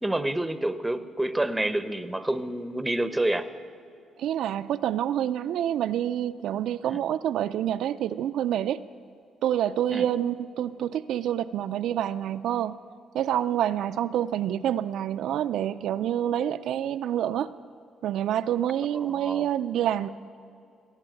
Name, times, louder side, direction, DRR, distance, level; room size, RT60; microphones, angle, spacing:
voice 1, 0.0-3.5 6.8-7.0 9.9-10.1 19.0-19.5, right 1 dB, 10° right, 12 dB, 0.7 m, -28 dB
voice 2, 4.2-8.8 9.4-12.8 13.1-17.5 18.0-20.1, right 10 dB, 80° right, 11 dB, 0.3 m, -27 dB
17.0 x 7.1 x 8.9 m, 2.5 s
cardioid pair, 90°, 0 cm